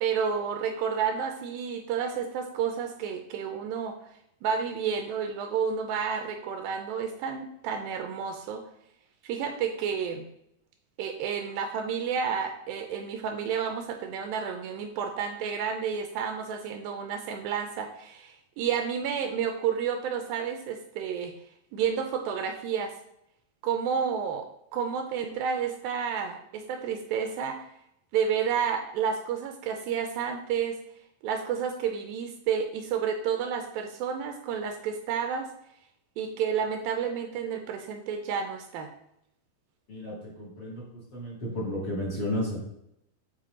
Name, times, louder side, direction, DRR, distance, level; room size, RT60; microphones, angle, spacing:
voice 1, 0.0-3.9 4.4-8.6 9.2-10.2 11.0-21.3 21.7-22.9 23.6-24.5 24.7-27.7 28.1-30.8 31.2-35.5 36.2-38.9, right 7 dB, 80° right, 5 dB, 2.2 m, -30 dB
voice 2, 39.9-40.8 41.1-42.6, left 1 dB, 30° left, -6 dB, 2.8 m, -32 dB
7.5 x 5.0 x 3.7 m, 0.77 s
omnidirectional pair, 4.4 m